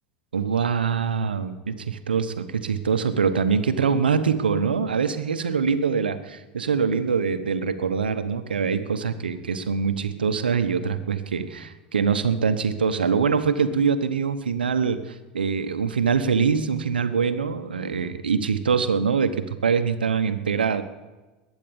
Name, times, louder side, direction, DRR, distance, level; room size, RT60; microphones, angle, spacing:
voice 1, 0.3-20.8, right 6 dB, 85° right, 11 dB, 1.0 m, -24 dB
21.0 x 9.2 x 7.1 m, 1.2 s
hypercardioid pair, 80°, 5 cm